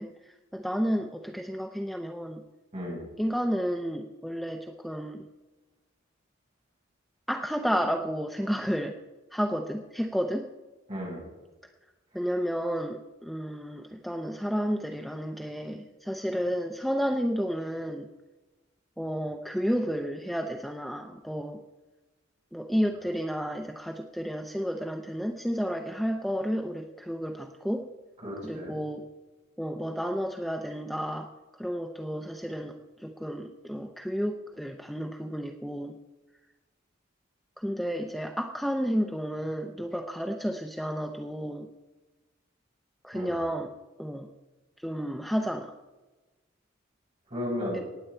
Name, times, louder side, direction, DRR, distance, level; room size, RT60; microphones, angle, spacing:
voice 1, 0.0-2.4 3.2-5.2 7.3-9.0 9.3-10.5 12.1-18.1 19.0-21.6 22.5-27.9 28.4-29.1 29.6-36.0 37.6-41.7 43.0-43.7 44.0-44.3 44.8-45.7 47.7-47.8, equal, ahead, 4 dB, 0.5 m, -31 dB
voice 2, 2.7-3.0 10.9-11.2 28.2-28.7 43.1-43.3 47.3-47.8, equal, 35° right, -3 dB, 4.9 m, -34 dB
18.5 x 8.1 x 4.4 m, 1.2 s
head